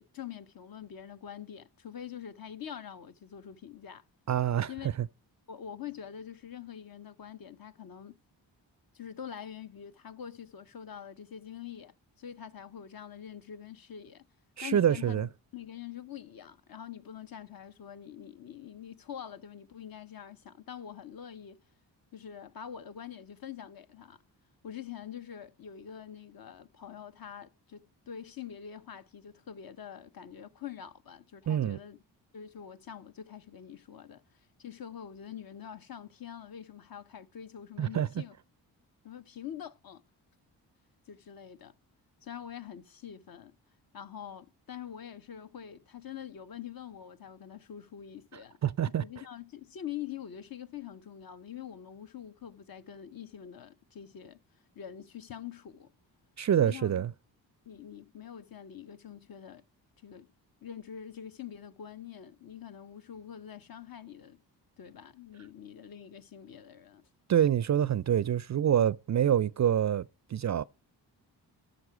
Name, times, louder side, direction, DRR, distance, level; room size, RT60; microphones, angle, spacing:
voice 1, 0.0-4.0 4.7-4.9 5.5-8.2 8.9-14.2 14.6-21.6 22.1-24.2 24.6-32.0 32.3-38.3 39.0-40.0 41.1-41.7 42.2-43.5 43.9-48.6 48.9-54.4 54.7-55.9 56.6-57.0 57.6-59.6 60.0-60.3 60.6-64.4 64.8-67.1, left 9 dB, 50° left, 0.9 m, -45 dB
voice 2, 4.3-4.7 14.6-15.3 31.5-31.8 37.8-38.1 48.6-49.0 56.4-57.1 67.3-70.6, right 9 dB, 40° right, 0.4 m, -26 dB
13.0 x 5.9 x 4.8 m
supercardioid pair, 45°, 45 cm